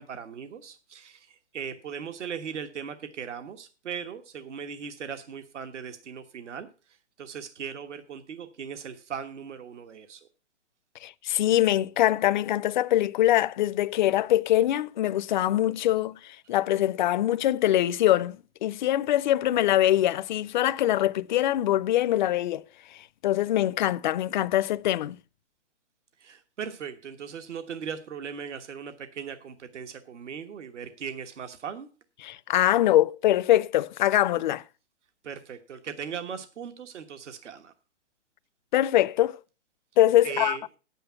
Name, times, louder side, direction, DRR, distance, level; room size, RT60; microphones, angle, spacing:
voice 1, 0.0-6.7 7.2-10.2 26.2-31.9 35.2-37.7 40.2-40.6, right 7 dB, 80° right, 1.5 m, -38 dB
voice 2, 11.0-22.6 23.2-25.2 32.2-34.6 38.7-39.4 40.0-40.6, left 13 dB, 40° left, 0.5 m, -23 dB
9.6 x 9.0 x 5.7 m
hypercardioid pair, 140°, 35 cm